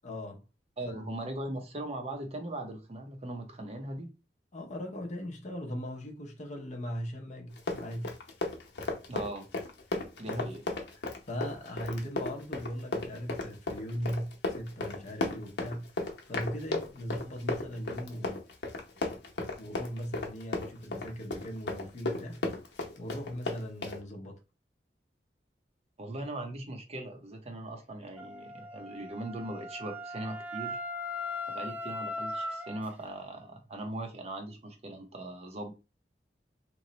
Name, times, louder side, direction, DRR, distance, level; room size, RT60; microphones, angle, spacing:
voice 1, 0.0-0.4 0.8-1.1 4.5-8.1 10.3-10.5 11.3-15.9 16.3-18.4 19.6-22.4 23.0-24.4, equal, 45° left, 0.6 m, -39 dB
voice 2, 0.8-4.1 9.1-9.5 10.2-10.6 26.0-30.8 31.5-35.7, right 1 dB, 35° right, 0.7 m, -39 dB
Run, 7.5-24.0, left 2 dB, 80° left, 0.7 m, -35 dB
Wind instrument woodwind instrument, 28.2-32.9, left 1 dB, 10° right, 0.3 m, -38 dB
3.0 x 2.0 x 3.9 m
head